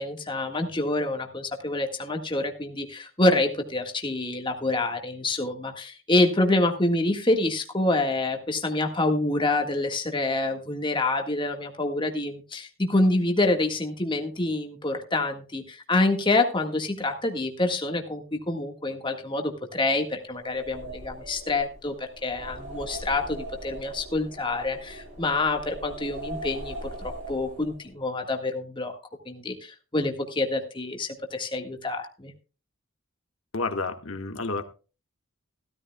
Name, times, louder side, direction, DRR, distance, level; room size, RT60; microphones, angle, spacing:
voice 1, 0.0-29.0 29.2-32.3, left 2 dB, 20° left, 3 dB, 1.6 m, -27 dB
sound 1, 20.3-27.9, right 1 dB, 65° right, 7.7 m, -40 dB
voice 2, 33.5-34.6, left 3 dB, 70° left, 7 dB, 1.5 m, -30 dB
16.0 x 13.5 x 2.3 m, 0.34 s
head